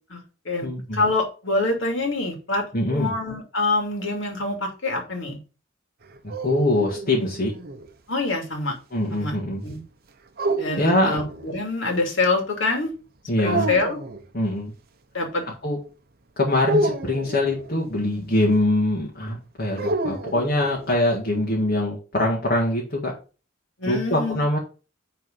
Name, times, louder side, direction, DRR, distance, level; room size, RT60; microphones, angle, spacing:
voice 1, 0.1-2.6 2.9-5.4 8.1-8.7 9.1-9.3 9.6-9.8 10.6-12.9 13.4-14.0 15.1-15.4 23.8-24.4, left 2 dB, 65° left, 2 dB, 2.7 m, -25 dB
voice 2, 0.6-1.0 2.7-3.1 6.4-7.5 8.9-9.6 10.8-11.2 13.3-13.7 14.3-14.7 15.6-15.8 16.4-23.1 23.9-24.6, left 1 dB, 45° left, -3 dB, 2.0 m, -23 dB
sound 1, 6.0-7.9 10.4-11.6 13.4-14.2 16.6-17.7 19.8-21.0, right 2 dB, 50° right, 1.0 m, -28 dB
9.8 x 4.1 x 5.4 m, 0.34 s
head